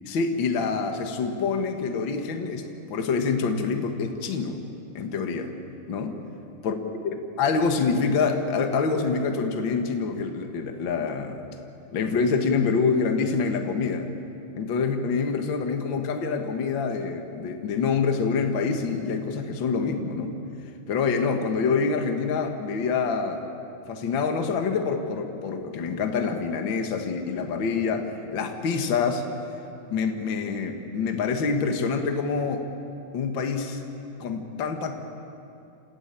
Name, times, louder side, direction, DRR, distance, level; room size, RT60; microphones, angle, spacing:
voice 1, 0.1-4.6 4.9-5.5 5.9-6.2 6.6-6.8 7.4-11.4 11.9-14.1 14.6-20.3 20.9-23.4 23.9-29.3 29.9-32.7 33.1-33.8 34.2-35.1, left 5 dB, 45° left, 5 dB, 1.8 m, -26 dB
28.0 x 15.0 x 9.0 m, 2.7 s
omnidirectional pair, 3.7 m